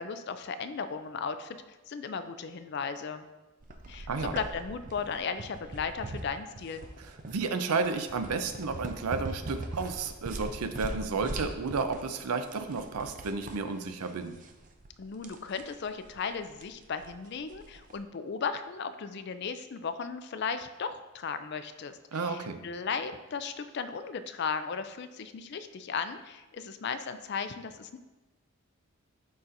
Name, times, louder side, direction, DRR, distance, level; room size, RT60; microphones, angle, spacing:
voice 1, 0.0-3.3 3.9-6.9 15.0-28.0, left 5 dB, 50° left, 10 dB, 0.4 m, -36 dB
sound 1, 3.6-18.0, right 2 dB, 35° right, 0.5 m, -42 dB
voice 2, 7.0-14.4 22.1-22.6, right 4 dB, 90° right, 9 dB, 0.6 m, -32 dB
11.5 x 4.1 x 2.6 m, 1.1 s
head